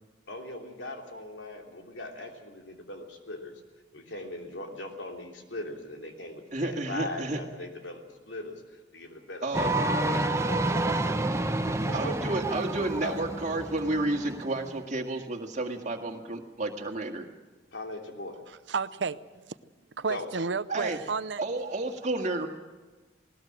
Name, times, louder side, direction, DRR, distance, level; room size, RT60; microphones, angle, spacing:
voice 1, 0.3-3.5 3.9-11.2 11.5-12.3 13.0-13.2 17.7-18.4 20.1-20.3, left 2 dB, 85° left, 3.2 m, -40 dB
voice 2, 6.5-7.4 9.4-9.8 10.9-11.0 11.9-17.3 20.7-21.0 21.4-22.5, right 2 dB, 40° right, 2.0 m, -31 dB
sound 1, 9.5-14.8, right 2 dB, 15° right, 0.8 m, -29 dB
voice 3, 18.7-19.6 20.0-21.4, right 4 dB, 75° right, 0.7 m, -31 dB
19.5 x 19.0 x 7.6 m
head